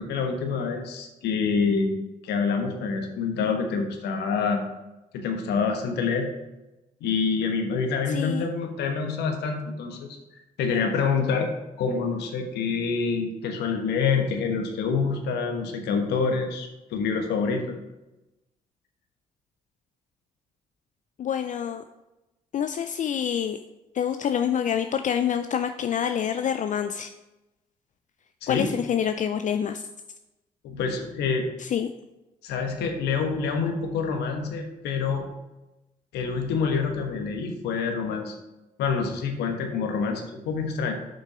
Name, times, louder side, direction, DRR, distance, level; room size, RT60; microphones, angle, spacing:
voice 1, 0.0-2.0 2.2-4.6 5.1-6.3 7.0-10.1 10.6-11.5 11.8-17.6 28.4-28.7 30.6-31.4 32.4-35.2 36.1-38.3 38.8-40.9, left 5 dB, 70° left, 4 dB, 1.2 m, -26 dB
voice 2, 8.1-8.5 21.2-21.8 22.5-23.6 23.9-27.1 28.5-29.8 31.6-31.9, left 8 dB, 45° left, 8 dB, 0.4 m, -27 dB
7.6 x 5.3 x 4.8 m, 1.0 s
hypercardioid pair, 45°, 18 cm